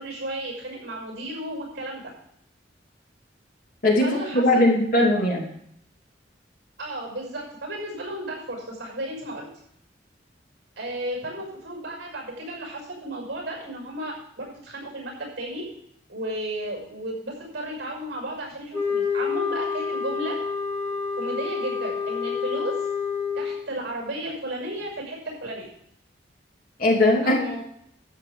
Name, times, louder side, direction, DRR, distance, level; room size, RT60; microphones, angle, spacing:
voice 1, 0.0-2.0 4.0-4.7 6.8-9.5 10.8-15.6 16.1-20.4 21.2-22.8 23.3-25.7 27.2-27.6, right 1 dB, 60° right, 0 dB, 6.0 m, -34 dB
voice 2, 3.8-5.5 26.8-27.4, left 1 dB, 50° left, -1 dB, 2.9 m, -20 dB
sound 1, 18.7-23.6, left 5 dB, 10° left, 3.1 m, -28 dB
12.5 x 8.5 x 5.1 m, 0.71 s
head